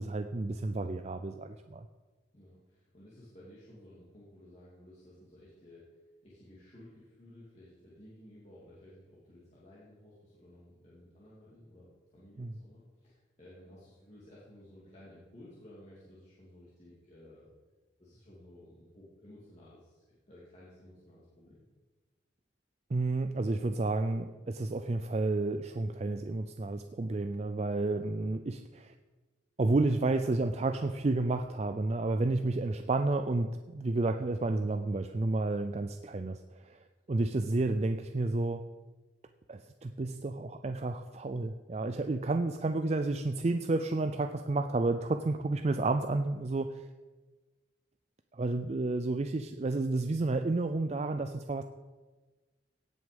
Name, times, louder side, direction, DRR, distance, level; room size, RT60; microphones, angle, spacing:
voice 1, 0.0-1.9 12.4-12.5 22.9-28.9 29.6-38.7 39.5-46.8 48.3-51.6, right 2 dB, 35° right, 7 dB, 0.4 m, -31 dB
voice 2, 2.3-17.5 18.0-21.6, left 1 dB, 35° left, -8 dB, 2.7 m, -55 dB
17.0 x 6.4 x 5.3 m, 1.3 s
head